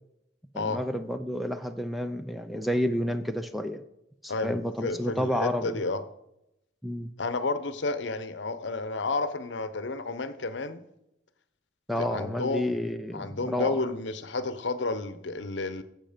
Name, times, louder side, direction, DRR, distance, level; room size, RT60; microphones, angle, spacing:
voice 1, 0.5-3.8 4.2-5.8 6.8-7.1 11.9-13.8, equal, ahead, 8 dB, 0.5 m, -30 dB
voice 2, 4.3-6.0 7.2-10.8 12.0-12.8 13.1-15.8, left 3 dB, 70° left, 12 dB, 0.8 m, -31 dB
15.0 x 7.5 x 5.1 m, 0.86 s
head